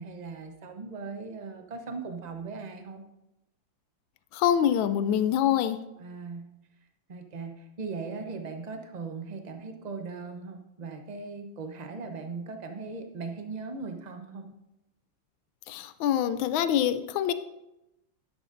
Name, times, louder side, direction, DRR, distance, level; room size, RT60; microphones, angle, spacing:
voice 1, 0.0-3.1 5.9-6.5 7.1-14.5, right 4 dB, 35° right, 5 dB, 0.6 m, -39 dB
voice 2, 4.3-5.8 15.7-17.3, left 10 dB, 90° left, 12 dB, 1.4 m, -25 dB
12.5 x 10.5 x 2.6 m, 0.89 s
omnidirectional pair, 2.1 m